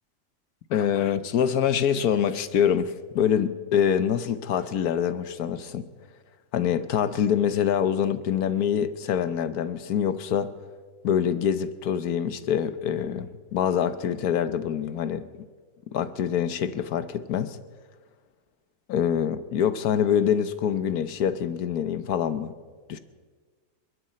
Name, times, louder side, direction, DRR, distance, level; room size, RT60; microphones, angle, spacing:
voice 1, 0.7-5.8 6.5-10.5 11.0-15.3 15.9-17.6 18.9-22.5 22.9-23.0, left 8 dB, 75° left, 11 dB, 1.4 m, -25 dB
28.5 x 11.5 x 4.3 m, 1.5 s
omnidirectional pair, 1.6 m